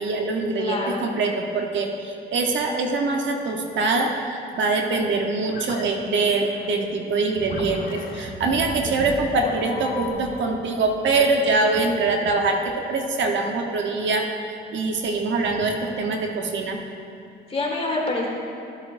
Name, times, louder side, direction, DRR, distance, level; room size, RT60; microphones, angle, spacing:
voice 1, 0.0-12.6 12.9-16.8, right 3 dB, 70° right, 2 dB, 1.1 m, -24 dB
voice 2, 0.6-1.2 17.5-18.3, left 2 dB, 30° left, -2 dB, 2.0 m, -26 dB
sound 1, 4.9-10.1, left 5 dB, 45° left, 0.8 m, -37 dB
14.5 x 7.6 x 2.6 m, 2.5 s
cardioid pair, 90°, 20 cm